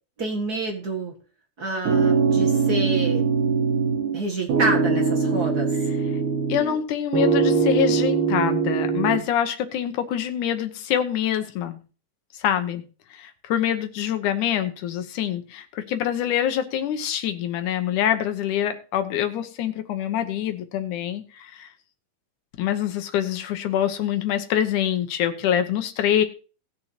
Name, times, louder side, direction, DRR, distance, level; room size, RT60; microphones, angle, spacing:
voice 1, 0.2-1.1 1.6-3.2 4.1-5.8, right 2 dB, 40° right, 0 dB, 1.6 m, -28 dB
sound 1, 1.9-4.2 4.5-6.8 7.1-9.2, right 5 dB, 65° right, 2.8 m, -22 dB
voice 2, 6.5-11.8 12.3-12.8 13.1-21.7 22.6-26.2, left 10 dB, 70° left, 8 dB, 2.3 m, -25 dB
19.0 x 7.0 x 2.9 m, 0.36 s
omnidirectional pair, 4.1 m